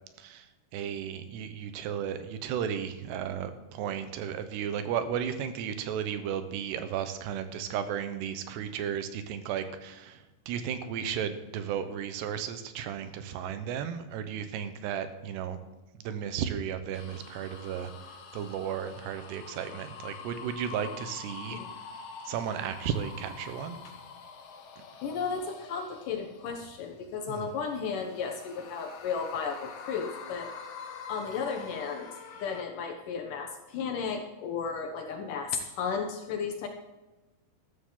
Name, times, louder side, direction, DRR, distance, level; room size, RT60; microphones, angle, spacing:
voice 1, 0.7-15.6 16.0-21.6 22.3-23.8 24.8-24.9 27.3-27.5, right 8 dB, 90° right, 10 dB, 3.1 m, -34 dB
sound 1, 16.9-26.8 27.4-32.6, left 6 dB, 90° left, 1.3 m, -46 dB
voice 2, 25.0-30.5 31.1-32.1 32.4-36.7, left 6 dB, 70° left, 4 dB, 2.1 m, -34 dB
13.5 x 13.0 x 3.9 m, 1.1 s
omnidirectional pair, 4.7 m